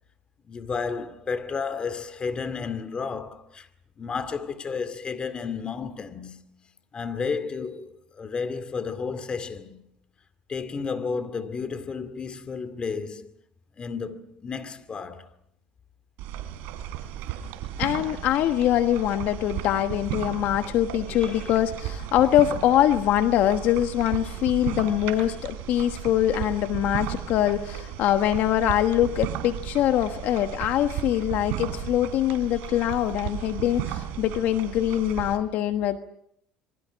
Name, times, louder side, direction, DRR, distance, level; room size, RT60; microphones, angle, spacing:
voice 1, 0.4-3.7 4.0-6.4 6.9-9.8 10.5-13.3 13.8-15.3 21.1-21.6 24.7-24.8, left 5 dB, 30° left, 2.3 m, -32 dB
sound 1, 16.2-35.4, right 11 dB, 75° right, 3.4 m, -35 dB
voice 2, 17.8-36.0, left 12 dB, 65° left, 1.3 m, -23 dB
26.5 x 23.5 x 6.3 m
supercardioid pair, 100°, 3 cm